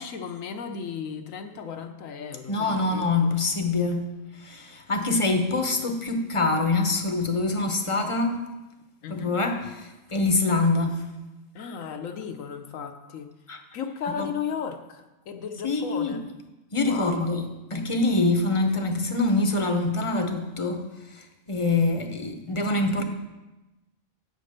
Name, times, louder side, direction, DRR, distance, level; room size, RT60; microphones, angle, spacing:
voice 1, 0.0-3.4 5.5-5.6 9.0-9.3 11.5-13.3 13.7-16.2 16.8-17.2, left 6 dB, 75° left, 1.1 m, -35 dB
voice 2, 2.5-4.1 4.4-8.4 9.1-11.0 13.5-13.6 14.2-14.3 15.6-16.2 16.7-20.8 21.1-23.0, left 3 dB, 30° left, 0.7 m, -25 dB
8.5 x 5.2 x 6.6 m
omnidirectional pair, 1.4 m